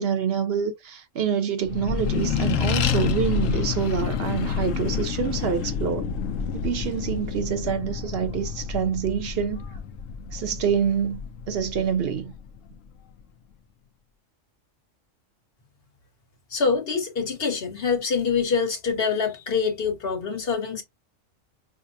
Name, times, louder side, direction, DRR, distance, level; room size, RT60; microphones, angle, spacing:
voice 1, 0.0-6.1 6.5-9.7 10.3-11.2 11.5-12.3, right 7 dB, 55° right, 0.9 m, -26 dB
Accelerating revving vroom, 1.7-12.6, left 7 dB, 80° left, 1.0 m, -28 dB
voice 2, 16.5-20.8, left 5 dB, 50° left, 1.4 m, -25 dB
5.7 x 2.2 x 2.6 m
omnidirectional pair, 1.3 m